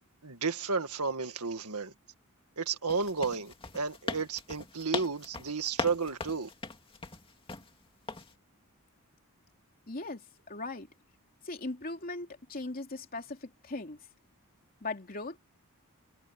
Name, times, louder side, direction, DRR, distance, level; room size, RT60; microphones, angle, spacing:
voice 1, 0.0-1.9 2.6-6.5, right 4 dB, 75° right, 1.9 m, -32 dB
sound 1, 2.9-7.7 8.1-8.3, left 3 dB, 25° left, 2.5 m, -39 dB
voice 2, 9.9-10.2 10.5-10.9 11.4-14.0 14.8-15.4, left 2 dB, 40° left, 3.1 m, -38 dB
head